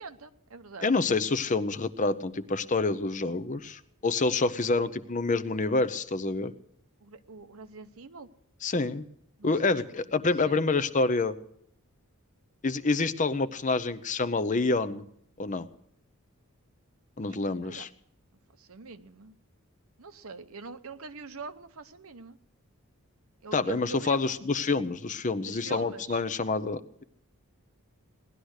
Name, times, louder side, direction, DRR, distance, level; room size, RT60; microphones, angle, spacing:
voice 1, 0.0-0.9 7.0-8.3 9.4-9.7 10.0-10.6 17.6-17.9 18.6-19.3 20.0-22.4 23.4-24.4 25.4-26.2, right 4 dB, 70° right, 11 dB, 0.9 m, -44 dB
voice 2, 0.8-6.5 8.6-9.0 9.4-11.4 12.6-15.0 15.4-15.7 17.2-17.9 23.5-27.0, left 3 dB, 35° left, 13 dB, 0.7 m, -27 dB
18.0 x 11.5 x 6.4 m, 0.70 s
head